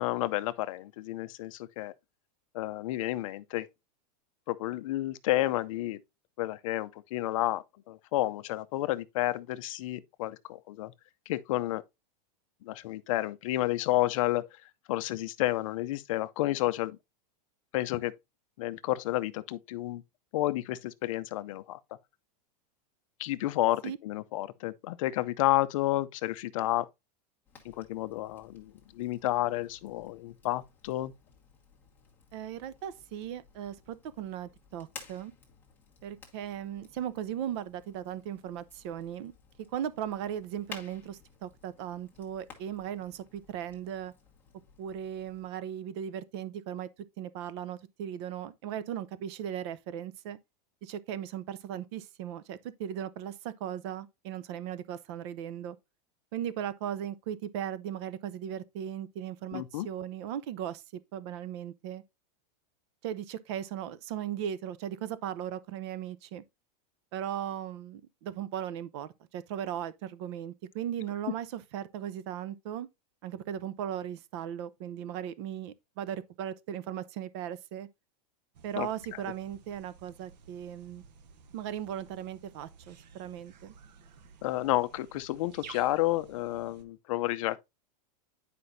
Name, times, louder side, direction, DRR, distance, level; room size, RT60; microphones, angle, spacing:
voice 1, 0.0-1.9 2.5-3.7 4.5-6.0 6.4-10.9 11.3-11.8 12.6-14.5 14.9-17.0 17.7-18.1 18.6-20.0 20.3-21.8 23.2-26.9 27.6-31.1 59.5-59.9 78.8-78.9 84.4-87.6, left 16 dB, 50° left, 0.6 m, -31 dB
Fire, 27.4-45.5, left 6 dB, 10° left, 1.3 m, -55 dB
voice 2, 32.3-35.3 36.0-39.3 39.7-44.1 44.8-46.9 47.2-50.4 50.8-55.8 56.3-62.0 63.0-66.4 67.1-72.9 73.2-77.9 78.6-81.0 81.5-83.7, right 10 dB, 40° right, 0.6 m, -37 dB
sound 1, 78.5-86.8, right 6 dB, 90° right, 1.1 m, -54 dB
9.7 x 5.1 x 2.6 m
supercardioid pair, 175°, 21 cm